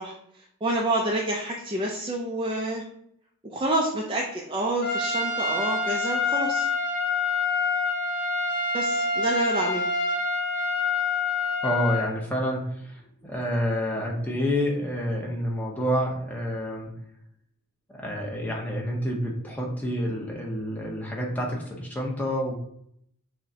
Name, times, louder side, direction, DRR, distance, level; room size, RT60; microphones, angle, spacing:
voice 1, 0.0-2.8 3.4-6.7 8.7-9.9, right 1 dB, 25° right, -1 dB, 0.3 m, -28 dB
Trumpet, 4.8-12.1, left 3 dB, 50° left, 0.6 m, -26 dB
voice 2, 11.6-16.9 18.0-22.5, equal, 5° left, -3 dB, 0.7 m, -28 dB
6.0 x 2.1 x 2.7 m, 0.70 s
head